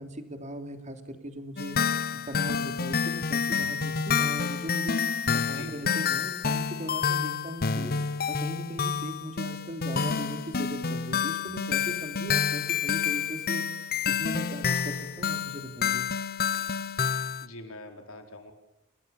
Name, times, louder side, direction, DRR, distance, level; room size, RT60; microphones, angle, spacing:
voice 1, 0.0-1.8 2.3-16.1, right 1 dB, 35° right, 7 dB, 3.1 m, -39 dB
sound 1, 1.6-17.5, left 6 dB, 45° left, 0.8 m, -29 dB
voice 2, 17.4-18.5, left 2 dB, 75° left, 5 dB, 4.6 m, -44 dB
28.5 x 19.5 x 7.1 m, 0.79 s
head